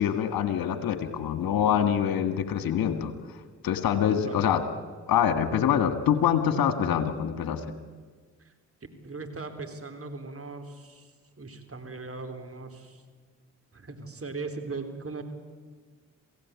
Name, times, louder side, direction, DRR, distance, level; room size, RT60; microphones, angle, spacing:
voice 1, 0.0-3.1 3.6-4.6 5.1-7.6, left 9 dB, 70° left, 10 dB, 1.8 m, -25 dB
voice 2, 9.0-11.1 11.4-13.0 13.7-15.2, right 3 dB, 40° right, 6 dB, 3.8 m, -39 dB
27.0 x 16.5 x 8.4 m, 1.5 s
hypercardioid pair, 40°, 36 cm